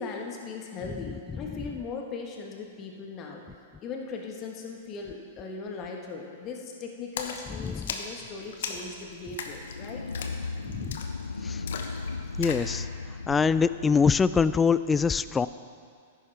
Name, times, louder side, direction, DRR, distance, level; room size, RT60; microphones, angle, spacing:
voice 1, 0.0-3.4 3.8-10.0, left 4 dB, 30° left, 1 dB, 1.5 m, -38 dB
voice 2, 1.0-1.4 7.6-7.9 10.6-11.0 11.4-11.6 12.4-12.9 13.3-15.5, left 5 dB, 15° left, 15 dB, 0.3 m, -24 dB
Splash splatter, 7.2-12.7, left 6 dB, 60° left, 1.0 m, -38 dB
sound 1, 9.4-14.2, left 4 dB, 80° left, 0.4 m, -36 dB
14.0 x 11.0 x 3.5 m, 2.2 s
figure-of-eight pair, 105°, 0 cm